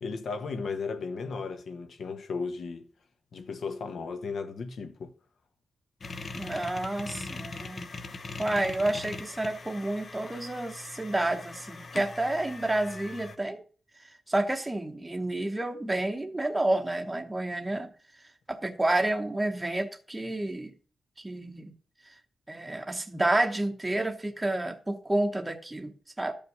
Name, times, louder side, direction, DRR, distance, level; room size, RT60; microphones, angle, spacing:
voice 1, 0.0-2.9 3.3-5.1, left 4 dB, 65° left, 1.4 m, -35 dB
sound 1, 6.0-13.4, left 3 dB, 35° left, 0.8 m, -41 dB
voice 2, 6.3-7.9 8.4-13.6 14.3-17.9 18.5-20.7 21.2-21.7 22.5-26.3, right 1 dB, 10° right, 1.0 m, -30 dB
12.5 x 5.4 x 6.6 m
wide cardioid pair, 170°, 0 cm